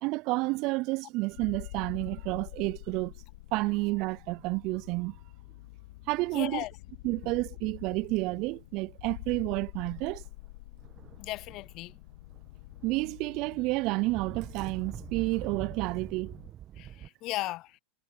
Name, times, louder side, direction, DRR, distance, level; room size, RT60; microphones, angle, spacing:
voice 1, 0.0-3.1 3.5-5.2 6.1-6.6 7.0-10.2 12.8-16.4, right 23 dB, 50° right, 0.5 m, -30 dB
sound 1, 1.3-16.5, left 21 dB, 65° left, 2.3 m, -47 dB
voice 2, 6.3-6.7 11.2-11.9 16.8-17.8, left 18 dB, 45° left, 0.6 m, -36 dB
sound 2, 8.9-9.2 9.8-10.3 10.8-12.0 12.3-17.1, right 11 dB, 35° right, 1.4 m, -45 dB
hypercardioid pair, 95°, 0 cm